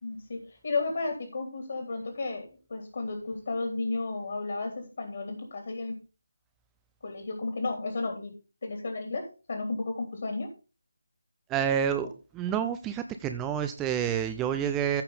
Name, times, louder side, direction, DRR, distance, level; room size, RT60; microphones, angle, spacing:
voice 1, 0.0-6.0 7.0-8.3 8.6-10.5 12.0-12.1, left 3 dB, 45° left, 3 dB, 2.9 m, -33 dB
voice 2, 11.5-12.1 12.3-15.0, right 9 dB, 10° right, 8 dB, 0.5 m, -28 dB
14.5 x 5.7 x 3.8 m, 0.31 s
figure-of-eight pair, 155°, 0 cm